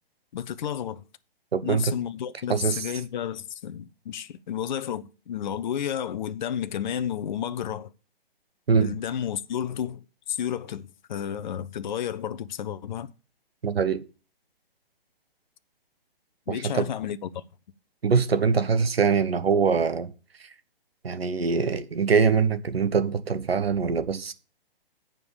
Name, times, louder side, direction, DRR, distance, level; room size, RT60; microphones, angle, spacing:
voice 1, 0.3-1.0 1.6-7.9 8.8-13.1 16.5-17.4, left 9 dB, 50° left, 0.7 m, -32 dB
voice 2, 1.5-1.9 2.5-2.8 8.7-9.0 13.6-14.0 16.5-16.9 18.0-20.1 20.4-20.5 21.0-24.3, right 5 dB, 85° right, 1.1 m, -23 dB
8.9 x 4.9 x 7.0 m
hypercardioid pair, 140°, 30 cm